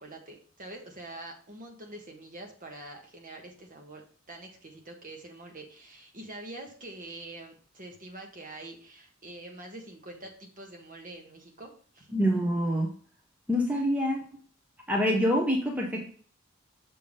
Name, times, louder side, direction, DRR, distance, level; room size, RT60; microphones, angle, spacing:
voice 1, 0.0-12.1, right 2 dB, 40° right, 2 dB, 1.4 m, -45 dB
voice 2, 12.1-12.9 13.5-14.2 14.9-16.1, equal, 10° right, -1 dB, 0.8 m, -26 dB
6.7 x 3.5 x 5.4 m, 0.43 s
head